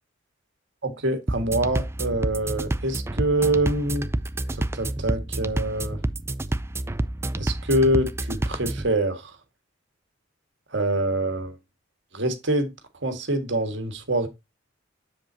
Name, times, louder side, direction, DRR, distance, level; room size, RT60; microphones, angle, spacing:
voice 1, 0.8-4.1 4.5-6.0 7.4-9.3 10.7-11.5 12.1-12.7 13.0-14.3, right 1 dB, 65° right, 1.7 m, -25 dB
sound 1, 1.3-8.9, right 1 dB, 15° right, 0.4 m, -29 dB
7.4 x 7.4 x 2.7 m
head